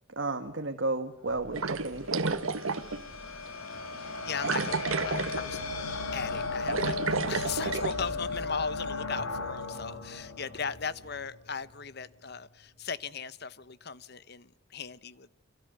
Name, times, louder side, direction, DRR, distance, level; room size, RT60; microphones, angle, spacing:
voice 1, 0.1-2.4, right 2 dB, 60° right, 6 dB, 1.7 m, -33 dB
sound 1, 1.3-11.6, left 3 dB, 90° left, 3.7 m, -37 dB
sound 2, 1.3-11.2, equal, 35° right, 5.2 m, -56 dB
sound 3, 1.5-3.0 3.5-3.6 4.4-5.6 5.9-6.1 6.4-8.0, right 4 dB, 85° right, 1.5 m, -31 dB
voice 2, 3.5-5.6 6.1-7.0 7.3-15.3, left 6 dB, 50° left, 16 dB, 1.1 m, -38 dB
30.0 x 26.0 x 6.8 m, 0.86 s
head